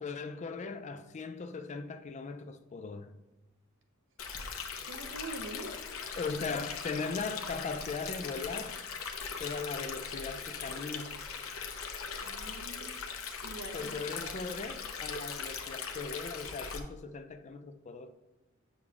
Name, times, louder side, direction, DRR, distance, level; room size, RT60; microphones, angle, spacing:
voice 1, 0.0-3.1 6.2-8.8 9.4-11.2 13.7-18.1, left 4 dB, 35° left, 0.4 m, -39 dB
Stream, 4.2-16.8, left 6 dB, 75° left, 0.8 m, -40 dB
voice 2, 4.8-5.8 12.2-13.0 13.4-14.4, right 2 dB, 65° right, 0.8 m, -45 dB
8.5 x 6.2 x 2.4 m
head